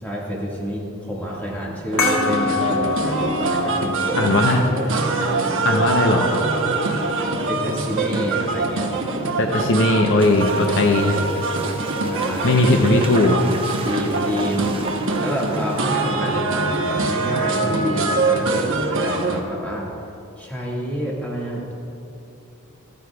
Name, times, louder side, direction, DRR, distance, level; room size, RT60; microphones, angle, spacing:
voice 1, 0.0-4.5 4.9-5.0 5.7-5.8 7.5-8.9 12.1-12.5 13.8-14.8 15.2-19.9 20.4-21.7, equal, 10° left, -4 dB, 1.8 m, -28 dB
sound 1, 1.9-19.4, right 3 dB, 60° right, 1.1 m, -24 dB
sound 2, 2.0-7.1, left 4 dB, 90° left, 2.3 m, -27 dB
voice 2, 4.1-5.3 5.6-6.3 9.4-11.2 12.4-13.4, left 2 dB, 60° left, 2 dB, 0.8 m, -18 dB
sound 3, 10.2-15.8, right 3 dB, 25° right, 0.8 m, -35 dB
14.5 x 13.5 x 2.4 m, 2.8 s
head